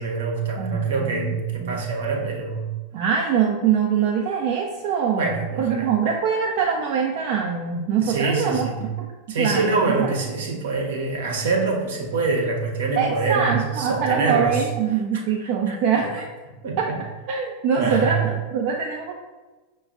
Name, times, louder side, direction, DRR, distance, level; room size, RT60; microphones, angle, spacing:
voice 1, 0.0-2.7 5.1-5.9 8.0-8.8 9.3-14.7 15.1-16.1 16.6-17.0 17.8-18.2, right 4 dB, 70° right, 0 dB, 0.8 m, -25 dB
voice 2, 0.6-1.8 2.9-8.7 9.0-9.1 9.4-10.1 13.0-16.2 17.3-19.1, right 6 dB, 50° right, 0 dB, 0.5 m, -23 dB
5.9 x 2.3 x 2.4 m, 1.2 s
hypercardioid pair, 90°, 0 cm